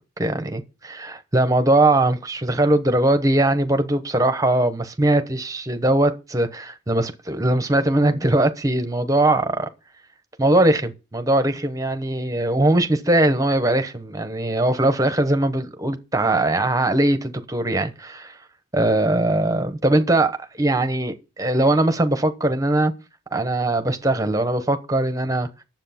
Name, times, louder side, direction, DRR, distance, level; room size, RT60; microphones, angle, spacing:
voice 1, 0.2-9.7 10.4-18.4 18.7-22.9 23.3-25.5, right 1 dB, 15° right, 0.9 m, -20 dB
9.9 x 7.5 x 5.7 m
head